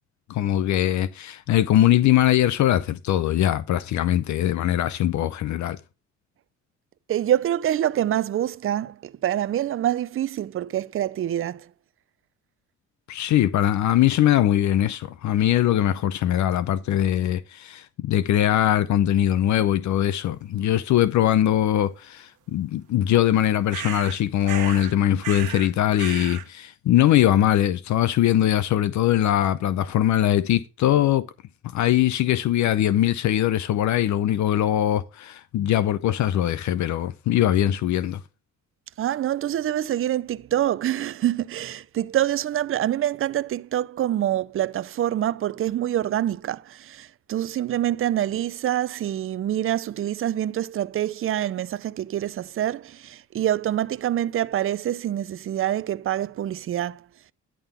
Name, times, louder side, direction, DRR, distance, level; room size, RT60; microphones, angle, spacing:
voice 1, 0.3-5.8 13.1-31.2 31.7-38.2, left 12 dB, 70° left, 0.6 m, -21 dB
voice 2, 7.1-11.7 39.0-57.0, right 12 dB, 45° right, 0.5 m, -26 dB
sound 1, 23.7-24.2 24.4-24.9 25.2-25.7 26.0-26.5, right 12 dB, 85° right, 1.2 m, -34 dB
11.0 x 3.8 x 6.8 m
cardioid pair, 90°, 30 cm